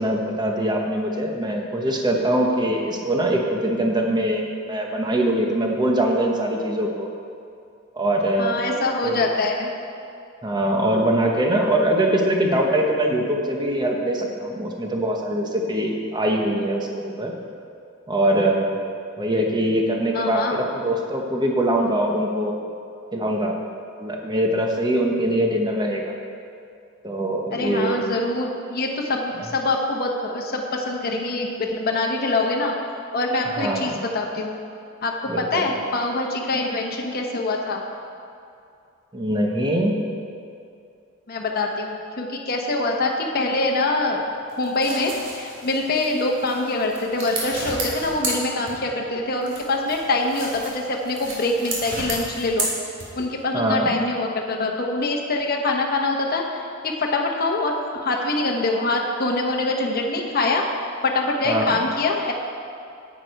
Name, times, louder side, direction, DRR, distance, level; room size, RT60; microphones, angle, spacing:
voice 1, 0.0-7.1 7.9-8.6 9.0-9.3 10.4-17.3 18.1-18.8 19.2-22.6 23.1-23.6 24.0-26.1 27.0-28.0 33.6-34.0 35.3-35.7 39.1-39.9 53.5-53.9 61.4-61.8, right 1 dB, 20° right, 1 dB, 1.0 m, -22 dB
voice 2, 8.4-9.7 20.1-20.6 27.5-32.7 33.1-34.5 35.0-37.8 41.3-44.2 44.6-52.7 53.1-56.4 56.8-57.7 58.0-60.7 61.0-62.3, left 2 dB, 50° left, 0 dB, 0.9 m, -24 dB
sound 1, 44.5-49.1 49.4-53.4, right 2 dB, 65° right, 2.4 m, -32 dB
9.5 x 8.3 x 4.6 m, 2.5 s
head